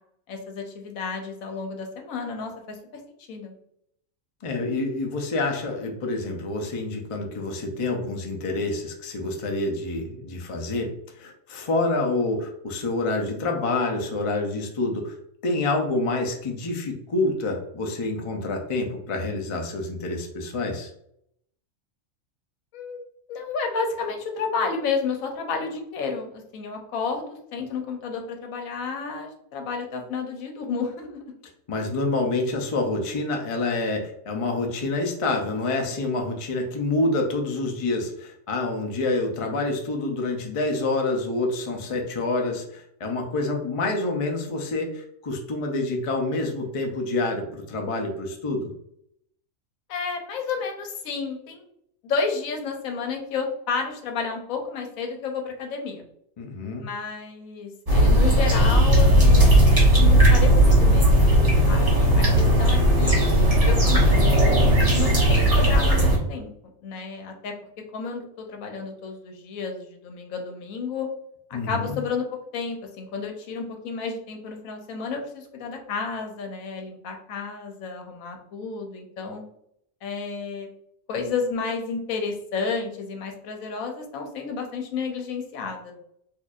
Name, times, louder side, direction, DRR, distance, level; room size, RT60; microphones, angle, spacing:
voice 1, 0.3-3.0 3.3-3.5 22.7-23.0 23.3-31.2 49.9-51.7 52.0-56.0 56.8-63.2 63.6-64.0 64.3-66.5 66.8-67.5 67.9-71.1 71.5-72.2 72.5-79.4 80.0-80.7 81.1-85.9, left 5 dB, 85° left, 3 dB, 1.1 m, -31 dB
voice 2, 4.4-10.9 11.2-15.1 15.4-20.9 31.7-48.7 56.4-56.8 71.5-72.0, left 2 dB, 45° left, 2 dB, 0.4 m, -27 dB
sound 1, 57.9-66.2, right 1 dB, 30° right, 1.1 m, -17 dB
4.4 x 2.6 x 2.4 m, 0.73 s
omnidirectional pair, 1.4 m